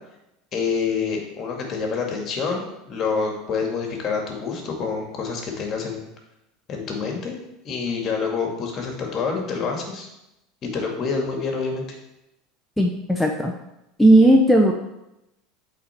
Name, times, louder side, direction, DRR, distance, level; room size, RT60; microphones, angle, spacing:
voice 1, 0.5-6.0 6.7-7.4 7.6-10.1 10.6-11.8, left 5 dB, 40° left, 1 dB, 2.2 m, -27 dB
voice 2, 12.8-13.5 14.0-14.7, right 1 dB, 5° left, 1 dB, 0.8 m, -15 dB
8.3 x 4.2 x 4.5 m, 0.88 s
hypercardioid pair, 80°, 0 cm